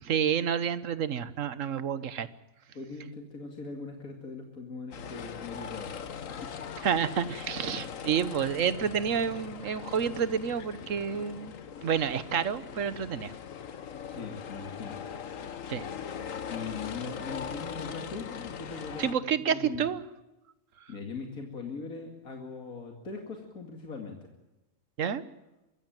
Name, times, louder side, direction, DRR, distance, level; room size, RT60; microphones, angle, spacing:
voice 1, 0.1-2.3 6.8-11.5 11.8-13.3 15.7-15.9 19.0-20.0 25.0-25.2, right 7 dB, 65° right, 14 dB, 1.4 m, -29 dB
voice 2, 2.7-6.5 14.1-15.0 16.5-19.8 20.9-24.3, left 4 dB, 85° left, 3 dB, 2.8 m, -40 dB
sound 1, 4.9-19.1, left 7 dB, 70° left, 1.5 m, -40 dB
24.0 x 15.5 x 9.0 m, 1.0 s
omnidirectional pair, 1.5 m